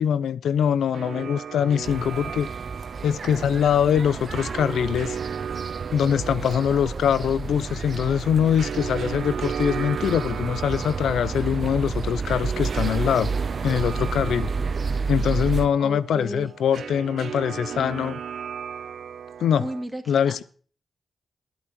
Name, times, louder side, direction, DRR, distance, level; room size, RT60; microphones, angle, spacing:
voice 1, 0.0-2.5 3.0-5.2 5.9-13.3 13.6-14.5 15.1-18.2 19.4-19.7 20.1-20.4, left 8 dB, 90° left, 0.5 m, -23 dB
sound 1, 0.9-19.8, right 7 dB, 80° right, 0.5 m, -36 dB
sound 2, 1.8-15.7, right 4 dB, 55° right, 0.8 m, -30 dB
voice 2, 15.8-16.5 19.6-20.4, right 1 dB, 10° right, 2.4 m, -34 dB
11.0 x 8.6 x 7.5 m
cardioid pair, 55°, 0 cm